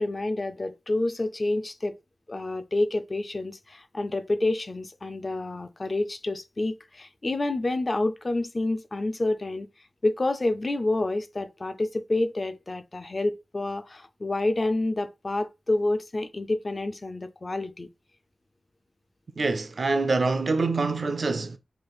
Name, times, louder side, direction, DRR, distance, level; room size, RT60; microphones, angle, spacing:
voice 1, 0.0-1.9 2.3-9.7 10.0-17.9, left 2 dB, 30° left, 0.4 m, -28 dB
voice 2, 19.4-21.6, right 3 dB, 50° right, 0.4 m, -25 dB
3.2 x 2.5 x 3.9 m
wide cardioid pair, 125°, 0 cm